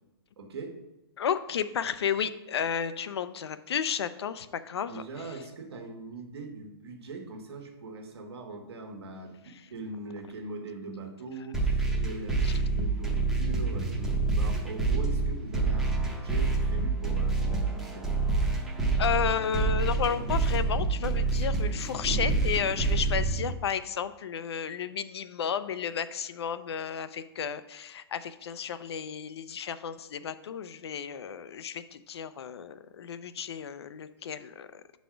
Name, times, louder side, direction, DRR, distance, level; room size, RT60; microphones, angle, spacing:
voice 1, 0.4-0.8 4.9-18.1, right 3 dB, 75° right, 4 dB, 1.3 m, -41 dB
voice 2, 1.2-5.0 12.4-12.5 19.0-34.8, left 7 dB, 80° left, 13 dB, 0.5 m, -32 dB
sound 1, 11.5-23.5, right 3 dB, 5° right, 0.7 m, -27 dB
5.6 x 4.1 x 5.0 m, 0.99 s
hypercardioid pair, 155°, 13 cm